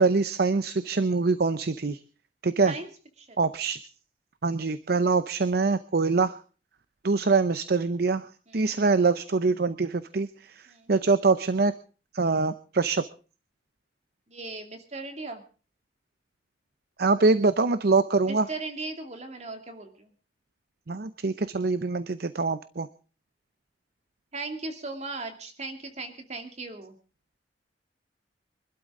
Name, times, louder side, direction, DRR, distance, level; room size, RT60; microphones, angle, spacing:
voice 1, 0.0-2.0 2.4-2.8 3.4-3.8 4.4-6.3 7.0-10.6 10.9-11.7 12.1-13.0 17.0-18.5 20.9-22.9, right 4 dB, 60° right, 13 dB, 0.7 m, -24 dB
voice 2, 14.3-15.4 18.3-20.1 24.3-27.0, right 3 dB, 40° right, 5 dB, 2.6 m, -38 dB
25.0 x 12.5 x 3.8 m, 0.37 s
head